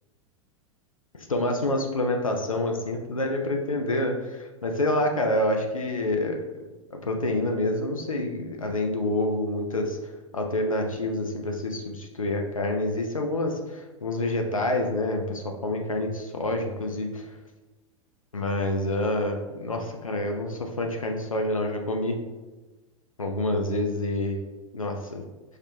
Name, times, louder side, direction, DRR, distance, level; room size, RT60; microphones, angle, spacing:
voice 1, 1.1-6.4 6.9-10.0 10.3-17.3 18.3-22.2 23.2-24.4 24.7-25.2, left 1 dB, 90° left, 3 dB, 0.4 m, -27 dB
4.8 x 2.2 x 3.0 m, 1.2 s
figure-of-eight pair, 90°, 17 cm